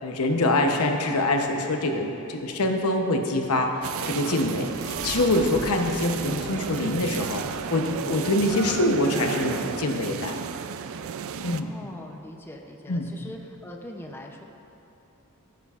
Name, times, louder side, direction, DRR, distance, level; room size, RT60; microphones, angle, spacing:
voice 1, 0.0-3.8 4.0-10.4 11.4-11.7 12.9-13.1, left 1 dB, 85° left, 4 dB, 0.9 m, -25 dB
sound 1, 3.7-10.0, equal, 15° right, 1.8 m, -45 dB
sound 2, 3.8-11.6, right 7 dB, 65° right, 0.4 m, -33 dB
voice 2, 11.4-14.4, left 1 dB, 10° left, 1 dB, 0.6 m, -41 dB
15.0 x 9.2 x 2.5 m, 2.8 s
head